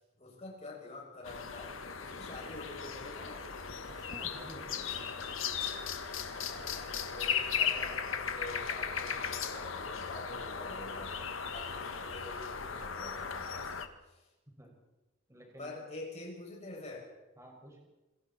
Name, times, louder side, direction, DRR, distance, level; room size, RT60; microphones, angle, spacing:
voice 1, 0.0-3.5 6.4-14.3 15.6-17.1, left 2 dB, 35° left, -1 dB, 7.1 m, -47 dB
sound 1, 1.2-13.9, left 7 dB, 70° left, 1.7 m, -37 dB
voice 2, 3.9-5.1 14.6-14.7 15.3-15.7 17.4-17.8, right 1 dB, 15° right, -1 dB, 6.2 m, -51 dB
27.5 x 23.5 x 4.4 m, 1.1 s
head